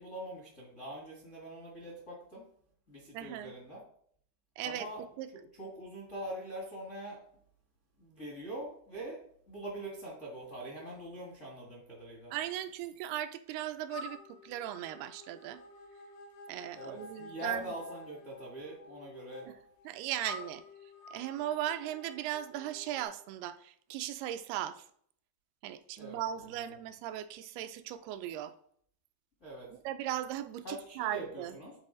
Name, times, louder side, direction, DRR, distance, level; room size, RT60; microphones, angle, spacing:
voice 1, 0.0-2.4 2.9-3.8 4.6-5.0 5.6-7.2 8.0-9.2 9.5-12.3 16.7-19.5 26.0-26.2 29.4-29.7 30.6-31.7, right 1 dB, 70° left, -4 dB, 0.7 m, -43 dB
voice 2, 3.1-3.6 4.6-4.9 5.2-5.3 12.3-15.6 16.5-17.7 19.5-19.6 19.9-20.6 21.1-24.9 25.6-28.5 29.7-31.6, right 12 dB, 85° right, 10 dB, 2.4 m, -38 dB
sound 1, 13.9-23.0, left 2 dB, 85° left, 3.2 m, -50 dB
9.7 x 4.0 x 3.8 m, 0.62 s
omnidirectional pair, 4.5 m